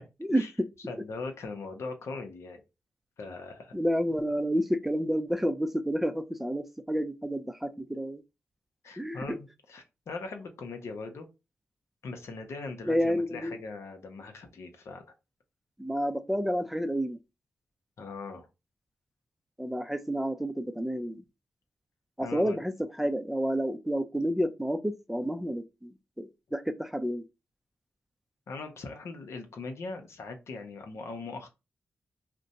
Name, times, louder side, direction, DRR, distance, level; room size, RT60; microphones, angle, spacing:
voice 1, 0.9-2.6 3.2-3.7 8.8-11.3 12.0-15.0 18.0-18.5 22.2-22.6 28.5-31.5, left 3 dB, 75° left, 0.7 m, -40 dB
voice 2, 3.7-8.2 9.0-9.4 12.9-13.6 15.8-17.2 19.6-21.2 22.2-22.7 23.0-27.2, equal, 5° right, 0.5 m, -30 dB
2.5 x 2.2 x 4.0 m
cardioid pair, 45°, 5 cm